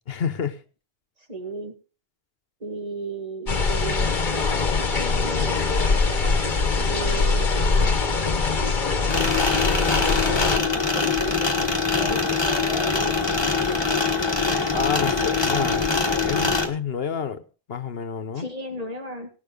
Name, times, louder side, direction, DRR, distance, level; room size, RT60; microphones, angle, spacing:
voice 1, 0.1-0.6 14.7-15.9 16.2-17.4 17.7-18.5, left 6 dB, 70° left, 12 dB, 1.2 m, -28 dB
voice 2, 1.3-1.7 2.6-6.0 6.8-13.2 18.3-19.3, right 1 dB, 35° right, 4 dB, 2.2 m, -35 dB
sound 1, 3.5-10.6, left 4 dB, 50° left, 1.4 m, -22 dB
sound 2, 9.1-16.7, left 4 dB, 25° left, 1.5 m, -23 dB
18.0 x 6.9 x 5.3 m, 0.37 s
omnidirectional pair, 1.1 m